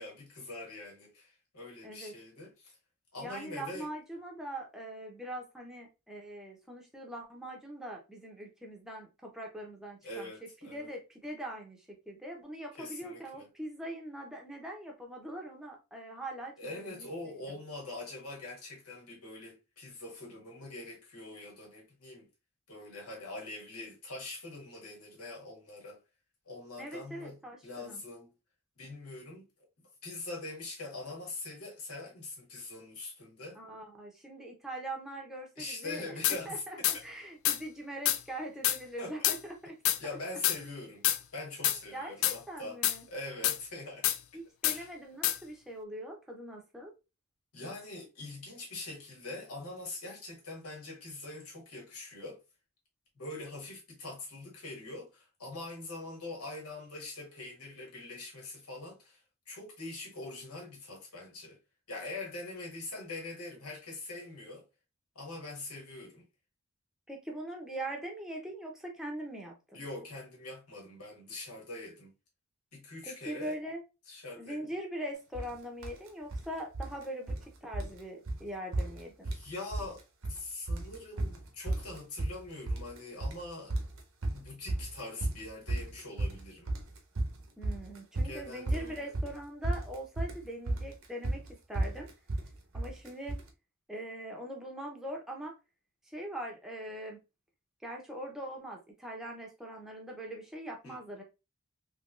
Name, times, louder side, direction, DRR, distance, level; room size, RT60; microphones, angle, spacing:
voice 1, 0.0-2.8 3.1-3.9 10.0-10.9 12.8-13.5 16.6-22.3 22.7-26.0 26.4-28.3 28.8-29.5 30.0-33.6 35.6-36.6 39.0-39.3 40.0-41.0 41.3-42.8 43.1-44.1 44.6-44.9 47.5-52.4 53.1-61.6 61.9-64.6 65.1-66.2 69.7-72.1 72.7-73.6 74.1-74.6 79.3-80.0 80.3-83.7 84.3-86.7 88.2-89.1 100.8-101.0, left 2 dB, 80° left, 1.5 m, -43 dB
voice 2, 1.8-2.1 3.2-10.3 10.6-17.4 26.8-28.0 33.5-39.7 41.9-43.1 44.3-46.9 67.1-69.8 73.0-73.8 74.4-79.3 87.6-91.4 91.7-92.1 92.7-93.4 93.9-95.5 96.1-97.2 97.8-101.2, right 1 dB, ahead, 0.7 m, -42 dB
sound 1, 36.2-36.4 36.8-37.0 37.4-37.6 38.1-38.2 38.6-38.8 39.2-39.4 39.8-40.0 40.4-40.6 41.0-41.2 41.6-41.8 42.2-42.4 42.8-43.0 43.4-43.6 44.0-44.2 44.6-44.8 45.2-45.4, left 12 dB, 60° left, 0.3 m, -27 dB
sound 2, 75.3-75.5 75.8-76.5 76.7-77.5 77.7-78.0 78.3-78.4 78.7-79.5 79.7-80.4 80.7-93.5, right 1 dB, 65° right, 0.7 m, -34 dB
3.4 x 3.0 x 2.4 m
head